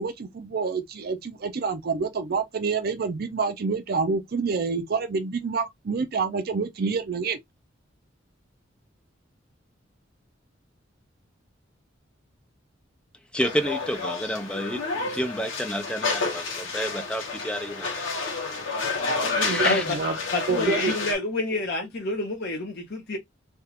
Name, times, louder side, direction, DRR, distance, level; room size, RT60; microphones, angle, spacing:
voice 1, 0.0-7.4 19.2-20.1 20.5-20.9, right 4 dB, 50° right, 0.5 m, -27 dB
voice 2, 13.3-18.1 19.4-19.8, equal, 5° left, 0.4 m, -30 dB
sound 1, 13.4-21.1, left 3 dB, 85° left, 1.2 m, -29 dB
voice 3, 20.3-23.2, left 2 dB, 55° left, 0.9 m, -28 dB
3.3 x 2.4 x 2.9 m
head